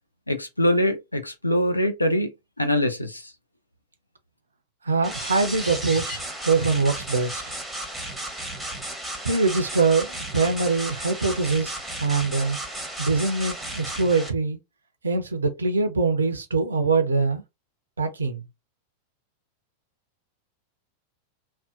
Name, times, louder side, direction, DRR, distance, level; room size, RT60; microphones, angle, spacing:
voice 1, 0.3-2.3 2.6-3.2, left 1 dB, 85° left, 0.4 m, -23 dB
voice 2, 4.8-7.4 9.2-12.6 13.0-14.6 15.0-17.4 18.0-18.4, right 4 dB, 75° right, 0.4 m, -23 dB
sound 1, 5.0-14.3, right 1 dB, ahead, 0.8 m, -34 dB
2.6 x 2.1 x 2.3 m
figure-of-eight pair, 90°, 0 cm